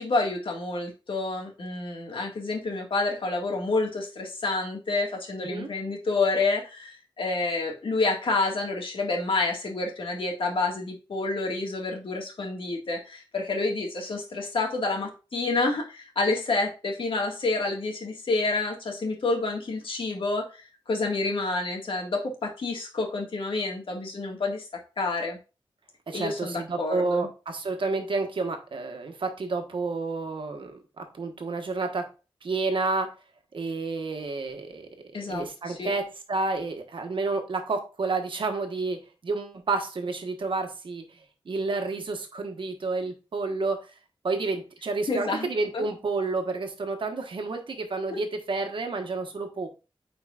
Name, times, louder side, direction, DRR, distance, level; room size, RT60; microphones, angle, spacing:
voice 1, 0.0-20.5 20.9-25.4 26.1-27.3 35.1-35.9 45.1-45.5 45.7-45.8 48.1-48.2, left 3 dB, 70° left, 1 dB, 1.9 m, -28 dB
voice 2, 26.1-32.1 32.4-33.1 33.5-34.9 35.3-41.2 41.4-43.9 44.2-49.7, right 3 dB, 65° right, 5 dB, 1.3 m, -30 dB
9.1 x 4.7 x 2.5 m, 0.32 s
wide cardioid pair, 130°, 9 cm